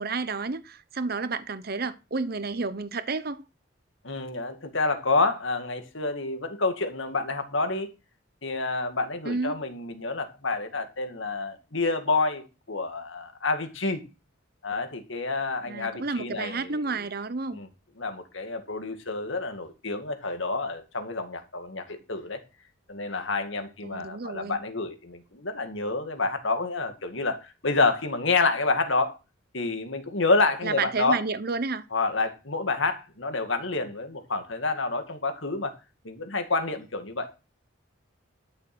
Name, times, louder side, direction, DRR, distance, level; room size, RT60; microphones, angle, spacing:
voice 1, 0.0-3.4 9.2-9.6 15.7-17.6 23.8-24.6 30.6-31.8, right 4 dB, 45° right, 0.9 m, -31 dB
voice 2, 4.0-7.9 8.4-14.0 14.6-16.8 17.5-17.7 18.0-22.4 22.9-29.2 29.5-31.2 31.9-35.7 36.0-37.3, left 3 dB, 65° left, 2.2 m, -28 dB
12.5 x 7.4 x 6.1 m
head